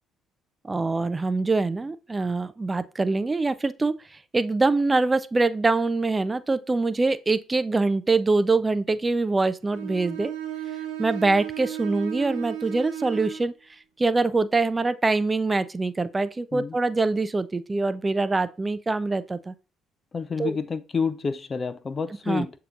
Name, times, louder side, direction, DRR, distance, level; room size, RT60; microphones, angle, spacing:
voice 1, 0.6-10.3 11.0-13.5 14.0-19.5 20.4-20.6 22.3-22.5, right 3 dB, 25° right, 0.3 m, -24 dB
Bowed string instrument, 9.7-13.5, right 10 dB, 80° right, 0.8 m, -34 dB
voice 2, 20.1-22.5, left 5 dB, 40° left, 0.5 m, -29 dB
6.7 x 2.8 x 2.4 m
hypercardioid pair, 55°, 0 cm